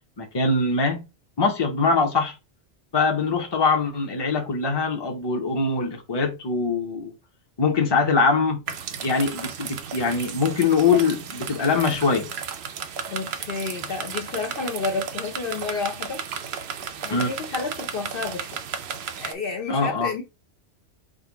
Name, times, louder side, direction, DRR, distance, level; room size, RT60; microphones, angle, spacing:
voice 1, 0.2-1.1 1.4-2.3 2.9-7.1 7.6-8.6 9.0-12.3 17.1-17.3 19.7-20.1, left 4 dB, 25° left, 0.8 m, -22 dB
sound 1, 8.7-19.3, right 7 dB, 65° right, 0.8 m, -34 dB
voice 2, 13.1-16.2 17.0-18.6 19.1-20.2, left 4 dB, 55° left, 0.8 m, -30 dB
3.8 x 2.4 x 4.6 m
omnidirectional pair, 1.2 m